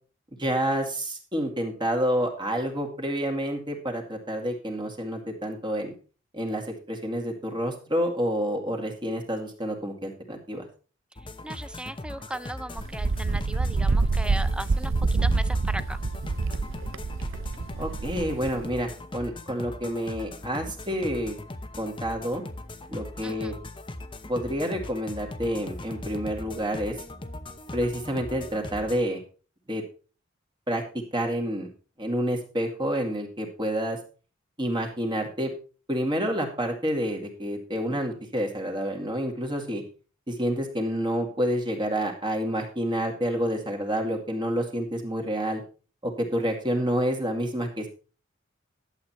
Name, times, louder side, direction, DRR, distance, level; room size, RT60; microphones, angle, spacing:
voice 1, 0.4-5.9 6.3-6.6 6.9-10.7 17.8-21.4 21.8-22.4 22.9-23.5 24.3-26.9 27.7-29.2 29.7-29.8 30.7-30.8 31.1-31.7 32.0-34.0 34.6-35.5 35.9-39.8 40.3-45.6 46.0-47.9, equal, 25° right, 2 dB, 2.2 m, -28 dB
sound 1, 11.2-29.0, left 2 dB, 25° left, 0.9 m, -40 dB
voice 2, 11.4-16.0 23.2-23.5, right 1 dB, 5° right, 15 dB, 0.5 m, -37 dB
Wind, 12.8-18.7, right 3 dB, 75° right, 0.7 m, -26 dB
11.5 x 8.1 x 4.4 m, 0.37 s
head